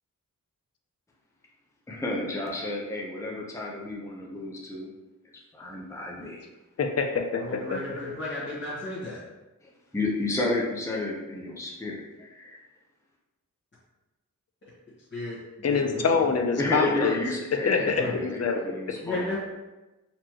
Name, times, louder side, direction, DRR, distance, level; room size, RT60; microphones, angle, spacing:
voice 1, 1.9-4.9 5.5-6.4 9.6-12.6 16.6-19.2, left 2 dB, 10° left, -3 dB, 0.6 m, -31 dB
voice 2, 6.8-7.8 15.6-17.2 17.7-18.6, left 5 dB, 50° left, 4 dB, 0.6 m, -25 dB
voice 3, 7.4-9.2 15.1-16.0 17.8-18.2 19.0-19.4, left 2 dB, 35° left, -9 dB, 1.3 m, -34 dB
4.2 x 3.1 x 2.9 m, 1.1 s
wide cardioid pair, 90°, 33 cm